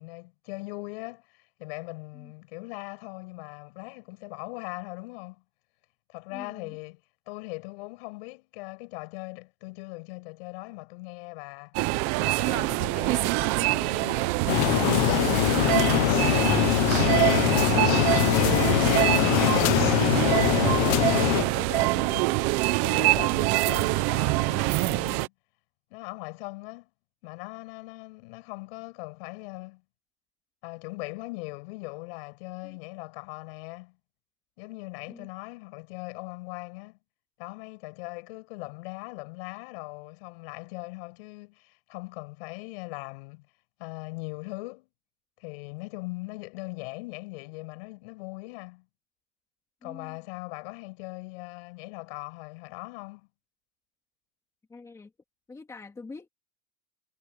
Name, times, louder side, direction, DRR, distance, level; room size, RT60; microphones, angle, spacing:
voice 1, 0.0-5.4 6.1-11.8 12.2-15.6 15.9-20.3 21.0-22.5 22.8-25.3 25.9-26.9 27.2-29.8 30.6-34.0 34.6-37.0 37.4-43.5 43.8-44.9 45.4-48.9 49.8-53.3, left 27 dB, 55° left, 7.7 m, -40 dB
voice 2, 6.3-6.7 32.6-32.7 35.1-35.3 49.8-50.2 54.7-55.1 55.5-56.3, left 3 dB, 10° left, 2.3 m, -45 dB
sound 1, 11.7-25.3, right 21 dB, 30° right, 0.5 m, -25 dB
sound 2, 14.5-21.4, left 21 dB, 35° left, 0.6 m, -23 dB
supercardioid pair, 175°, 36 cm